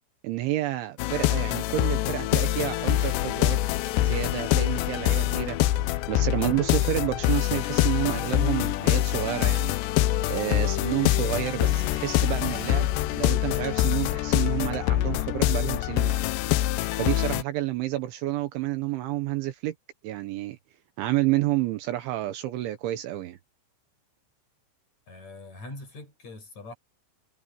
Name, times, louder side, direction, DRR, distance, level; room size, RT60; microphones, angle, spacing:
voice 1, 0.2-3.6 4.0-5.6 6.1-9.8 10.3-16.2 16.9-19.7 20.0-20.6 21.0-23.4, right 15 dB, 75° right, 3.2 m, -29 dB
sound 1, 1.0-17.4, left 14 dB, 85° left, 2.5 m, -25 dB
voice 2, 25.1-26.7, left 2 dB, 35° left, 8.7 m, -42 dB
omnidirectional pair, 5.9 m